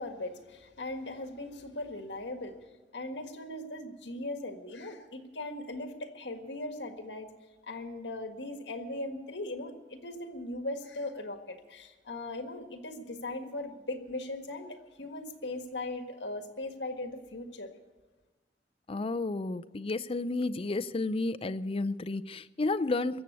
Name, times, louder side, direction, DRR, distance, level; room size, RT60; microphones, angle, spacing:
voice 1, 0.0-2.6 2.9-7.3 7.7-17.7, left 2 dB, 70° left, 6 dB, 1.7 m, -39 dB
voice 2, 18.9-23.2, left 2 dB, 35° left, 14 dB, 0.5 m, -31 dB
21.5 x 7.7 x 8.3 m, 1.2 s
head